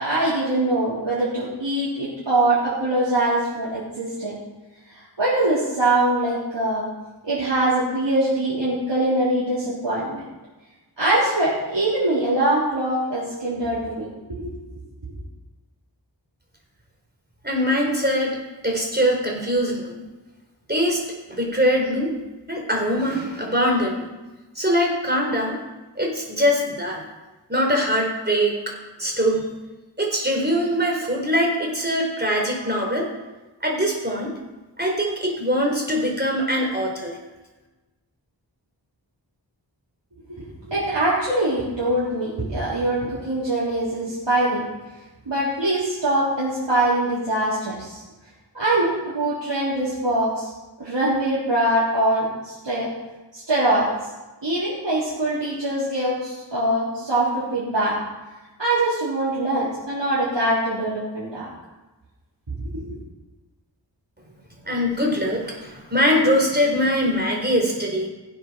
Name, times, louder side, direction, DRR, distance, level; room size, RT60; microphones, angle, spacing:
voice 1, 0.0-4.4 5.2-6.8 7.3-10.2 11.0-14.6 40.3-44.6 45.3-48.0 48.5-50.5 50.8-52.9 53.3-53.9 54.4-58.0 58.6-61.5 62.7-63.0, right 1 dB, 75° right, -10 dB, 3.8 m, -23 dB
voice 2, 17.4-18.4 18.6-20.1 20.7-22.1 22.5-24.2 24.5-25.6 26.0-27.0 27.5-28.6 29.0-29.5 30.0-33.1 33.6-34.3 34.8-37.2 64.7-68.1, equal, 20° right, 0 dB, 4.2 m, -22 dB
16.5 x 7.8 x 6.2 m, 1.1 s
wide cardioid pair, 50°, 44 cm